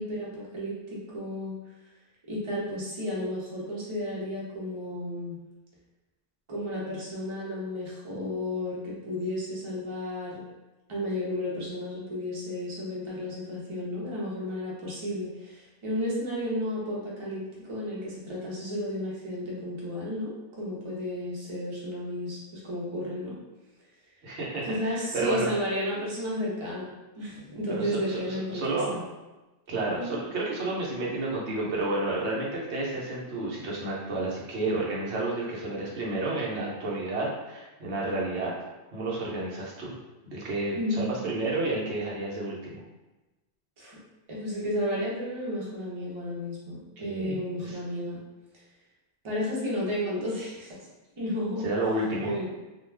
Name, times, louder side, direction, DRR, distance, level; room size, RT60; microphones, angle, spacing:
voice 1, 0.0-1.6 2.3-5.4 6.5-10.4 10.9-23.4 24.6-29.0 29.9-30.2 40.8-41.3 43.8-44.0 44.3-48.2 49.2-50.9 51.2-51.7 52.2-52.5, left 1 dB, 30° right, -6 dB, 0.7 m, -33 dB
voice 2, 24.2-25.5 27.7-29.0 29.7-38.5 38.9-40.0 40.2-42.8 47.0-47.8 51.6-52.3, right 2 dB, 85° right, -4 dB, 1.0 m, -31 dB
2.4 x 2.3 x 3.2 m, 1.1 s
omnidirectional pair, 1.1 m